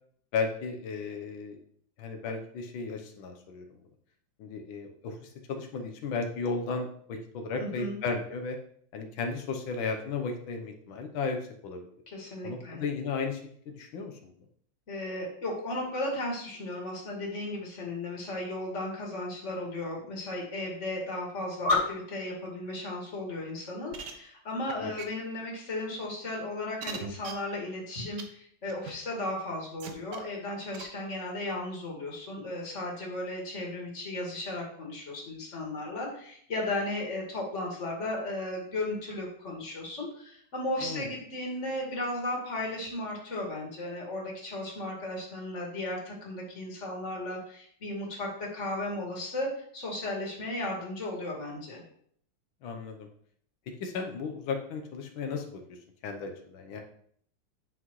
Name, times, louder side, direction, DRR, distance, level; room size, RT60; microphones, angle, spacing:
voice 1, 0.3-1.6 2.0-3.6 4.4-8.6 8.9-11.8 12.4-13.4 13.7-14.2 24.8-24.9 40.8-41.1 52.6-53.1 53.8-55.8 56.0-56.8, left 4 dB, 90° left, 4 dB, 1.7 m, -34 dB
voice 2, 7.6-8.0 12.1-12.8 14.9-51.8, left 2 dB, 40° left, -1 dB, 2.2 m, -35 dB
sound 1, 23.9-24.1 24.7-24.8 25.0-25.1 25.9-26.0 26.8-27.3 28.2-28.3 28.7-28.9 29.8-30.2 30.7-30.8, right 6 dB, 70° right, 1.5 m, -38 dB
9.8 x 5.8 x 3.1 m, 0.63 s
omnidirectional pair, 2.1 m